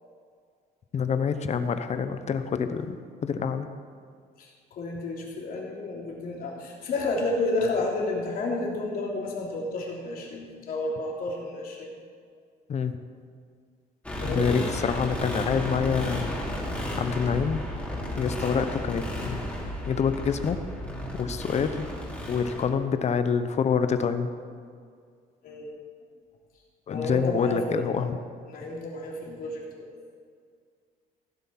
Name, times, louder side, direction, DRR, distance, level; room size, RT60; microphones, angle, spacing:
voice 1, 0.9-3.0 3.2-3.7 12.7-13.0 14.2-16.3 17.0-17.6 18.2-19.4 19.8-20.6 21.2-21.9 22.3-24.3 26.9-28.2, left 6 dB, 40° left, 10 dB, 0.8 m, -26 dB
voice 2, 4.4-11.9 14.2-14.6 20.8-21.0 25.4-25.7 26.9-28.1 28.5-29.9, left 2 dB, 60° left, -2 dB, 3.3 m, -31 dB
sound 1, 14.0-22.6, left 1 dB, 10° left, 2.9 m, -33 dB
16.0 x 8.1 x 5.9 m, 2.1 s
cardioid pair, 110°, 17 cm